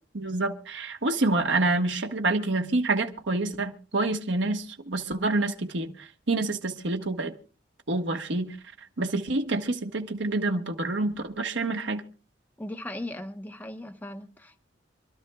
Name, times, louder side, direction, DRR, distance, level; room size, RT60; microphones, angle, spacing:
voice 1, 0.1-7.3 7.9-8.6 9.0-12.0, right 2 dB, 75° right, 1.3 m, -27 dB
voice 2, 12.6-14.6, left 1 dB, 10° left, 1.0 m, -38 dB
27.5 x 12.5 x 2.3 m
head